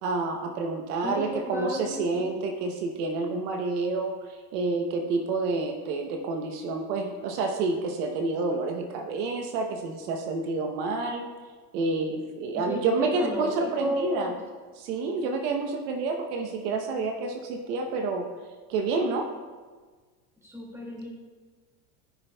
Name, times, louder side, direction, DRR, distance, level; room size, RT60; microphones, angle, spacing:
voice 1, 0.0-11.2 11.7-14.3 14.7-18.3 18.7-19.3, right 3 dB, 65° right, 4 dB, 1.0 m, -29 dB
voice 2, 1.0-2.2 12.5-14.4 20.4-21.1, left 1 dB, 5° right, -3 dB, 2.3 m, -33 dB
13.5 x 5.8 x 2.3 m, 1.4 s
supercardioid pair, 115°, 49 cm